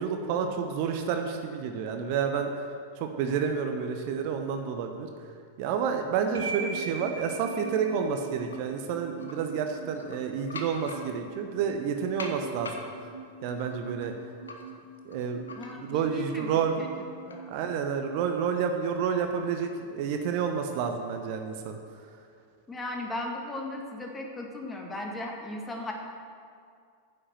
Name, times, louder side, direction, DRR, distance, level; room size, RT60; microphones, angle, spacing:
voice 1, 0.0-2.5 3.0-5.1 5.6-12.8 13.4-14.1 15.0-15.4 15.8-16.7 17.5-21.8, right 7 dB, 45° right, 5 dB, 0.9 m, -29 dB
sound 1, 6.3-18.4, right 4 dB, 70° right, 1.2 m, -42 dB
sound 2, 7.6-8.6 9.1-9.3 9.8-11.4 12.2-16.1 16.4-17.5, left 3 dB, 70° left, 1.3 m, -44 dB
voice 2, 15.6-17.5 22.7-25.9, left 1 dB, 15° left, 1 dB, 1.8 m, -37 dB
10.0 x 7.8 x 7.7 m, 2.3 s
figure-of-eight pair, 90°, 0 cm